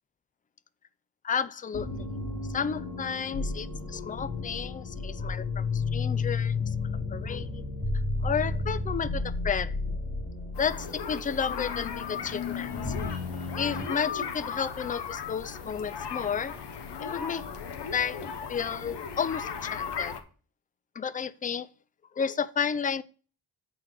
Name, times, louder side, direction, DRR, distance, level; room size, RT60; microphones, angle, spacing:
voice 1, 1.2-2.0 2.5-6.7 7.1-7.6 8.2-9.8 10.6-12.9 13.6-16.6 17.0-17.4 17.9-20.1 21.0-21.7 22.2-23.0, left 7 dB, 20° left, 0.3 m, -32 dB
sound 1, 1.7-14.0, left 3 dB, 60° left, 2.7 m, -33 dB
sound 2, 10.5-20.2, left 6 dB, 75° left, 0.9 m, -37 dB
8.4 x 3.4 x 5.8 m
cardioid pair, 85°, 41 cm